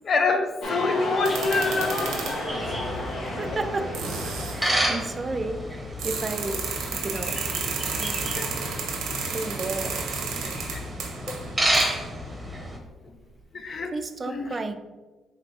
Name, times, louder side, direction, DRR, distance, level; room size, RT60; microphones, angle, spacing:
voice 1, 0.0-2.3 8.3-8.5 10.7-10.8 11.3-11.4 13.5-13.9 14.3-14.5, left 3 dB, 45° left, 6 dB, 0.5 m, -26 dB
sound 1, 0.6-5.5, left 1 dB, 65° left, 1.1 m, -32 dB
sound 2, 1.2-2.5 3.5-3.6 3.9-4.6 6.0-12.1, right 5 dB, 85° right, 0.8 m, -32 dB
sound 3, 2.5-12.8, equal, 10° right, 0.9 m, -31 dB
voice 2, 2.6-4.0 4.5-7.4 8.0-8.2 9.3-10.0 13.9-14.7, right 3 dB, 35° right, 8 dB, 0.4 m, -33 dB
5.2 x 3.2 x 2.8 m, 1.3 s
cardioid pair, 90°, 0 cm